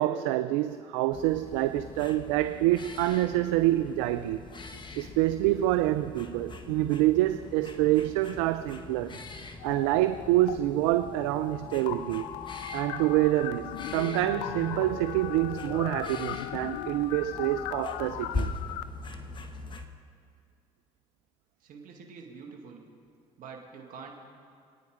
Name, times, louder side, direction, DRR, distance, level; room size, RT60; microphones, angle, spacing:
voice 1, 0.0-4.4 5.0-9.2 9.6-12.3 12.7-18.5, right 15 dB, 80° right, 11 dB, 0.4 m, -26 dB
sound 1, 1.1-19.9, left 3 dB, 30° left, 1.3 m, -42 dB
sound 2, 9.6-10.6 10.8-18.8, left 12 dB, 80° left, 0.5 m, -38 dB
voice 2, 21.6-22.8 23.4-24.2, right 5 dB, 60° right, 1 dB, 2.0 m, -46 dB
23.0 x 9.6 x 5.0 m, 2.3 s
hypercardioid pair, 65°, 15 cm